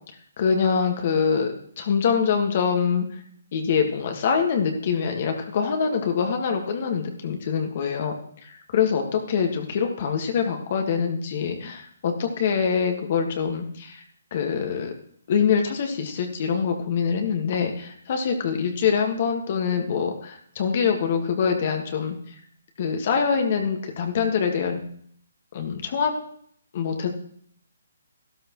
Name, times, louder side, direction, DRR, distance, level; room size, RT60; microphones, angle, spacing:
voice 1, 0.4-3.1 3.5-8.1 8.4-14.0 14.3-14.9 15.3-22.2 22.8-24.8 25.5-26.1 26.7-27.1, left 6 dB, 45° left, 3 dB, 1.8 m, -24 dB
13.5 x 12.5 x 3.1 m, 0.64 s
figure-of-eight pair, 145°, 0 cm